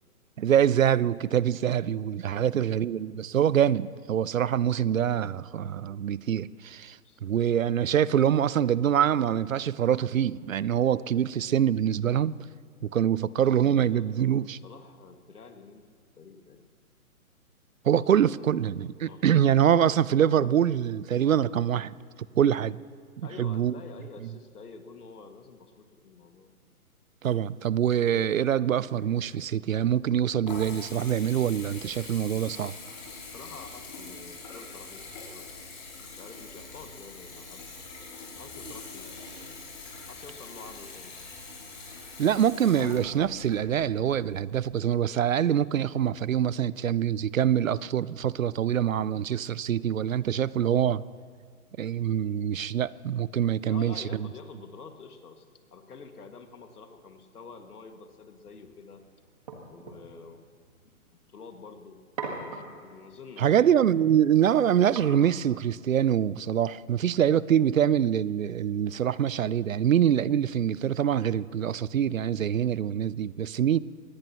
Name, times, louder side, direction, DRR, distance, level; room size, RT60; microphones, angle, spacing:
voice 1, 0.4-12.3 12.9-14.6 17.8-21.9 22.4-22.8 23.4-23.7 27.2-32.7 42.2-51.0 51.8-54.3 63.4-73.8, right 9 dB, 65° right, 0.5 m, -25 dB
voice 2, 2.3-2.8 7.0-7.2 13.4-15.9 16.2-16.7 19.0-19.8 23.2-26.5 33.2-35.5 36.1-37.6 38.2-39.6 40.1-41.2 53.6-59.0 59.7-60.4 60.8-62.0 62.8-63.8, left 5 dB, 90° left, 2.2 m, -48 dB
Water tap faucet / Bathtub (filling or washing) / Trickle dribble, 30.4-44.7, left 3 dB, 30° left, 5.5 m, -44 dB
sound 1, 58.5-66.2, right 4 dB, 25° right, 1.7 m, -45 dB
23.5 x 20.0 x 3.0 m
hypercardioid pair, 180°, 44 cm